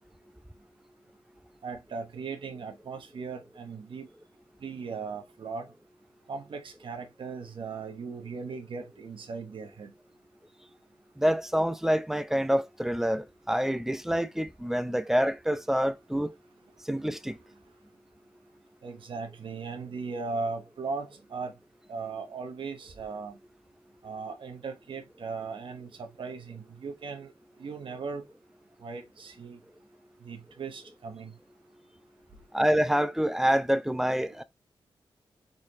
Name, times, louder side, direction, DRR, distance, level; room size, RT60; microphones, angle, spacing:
voice 1, 1.6-4.1 4.6-5.7 6.3-9.9 18.8-21.5 21.9-23.4 24.0-27.3 27.6-28.2 28.8-29.6 30.2-31.3, right 4 dB, 65° right, 1.1 m, -38 dB
voice 2, 11.2-16.3 16.9-17.4 32.5-34.4, equal, 5° right, 0.6 m, -27 dB
4.2 x 4.0 x 3.0 m
cardioid pair, 65°, 9 cm